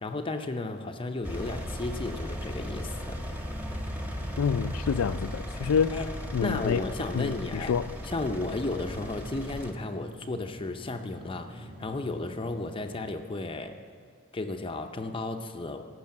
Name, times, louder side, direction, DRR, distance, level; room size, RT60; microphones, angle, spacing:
voice 1, 0.0-3.2 5.9-6.1 6.4-7.8 8.0-13.8 14.3-15.9, left 2 dB, 25° left, 0.6 m, -34 dB
Engine, 1.2-9.7, equal, 10° right, 1.2 m, -36 dB
voice 2, 4.4-6.1 6.3-6.8 7.1-8.0, left 6 dB, 80° left, 0.4 m, -27 dB
sound 1, 4.5-13.1, equal, 45° right, 4.2 m, -48 dB
18.0 x 6.3 x 7.5 m
head